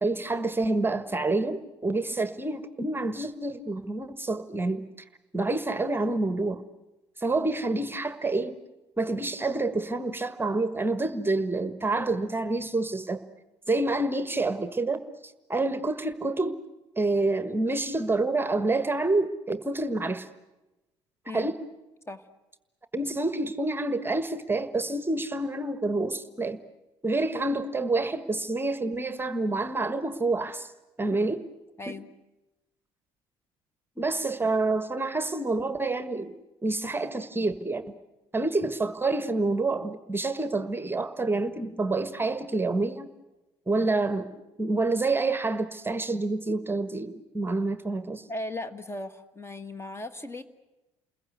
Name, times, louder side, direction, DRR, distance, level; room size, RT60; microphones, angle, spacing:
voice 1, 0.0-4.8 5.3-6.6 7.2-8.6 9.0-13.2 13.7-16.6 17.0-20.3 21.3-21.5 22.9-26.6 27.0-30.7 31.0-31.4 34.0-36.3 36.6-38.0 38.3-43.1 43.7-48.2, right 2 dB, 15° right, 12 dB, 1.4 m, -28 dB
voice 2, 31.8-32.1 48.3-50.4, left 1 dB, 15° left, 12 dB, 1.6 m, -37 dB
29.5 x 21.5 x 8.1 m, 1.0 s
figure-of-eight pair, 55°, 14 cm